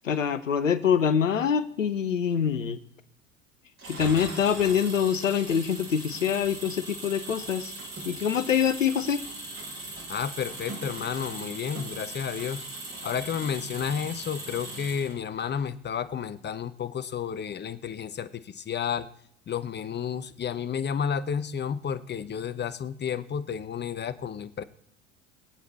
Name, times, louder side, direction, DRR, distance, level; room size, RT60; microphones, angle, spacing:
voice 1, 0.0-2.8 3.9-7.7 8.0-9.2, left 7 dB, 90° left, 14 dB, 0.9 m, -25 dB
Engine, 3.8-15.4, right 2 dB, 35° right, 6.7 m, -39 dB
voice 2, 10.1-12.6 13.0-19.1 19.5-24.6, left 7 dB, 30° left, 14 dB, 0.9 m, -31 dB
25.0 x 8.3 x 4.1 m, 0.70 s
hypercardioid pair, 70°, 37 cm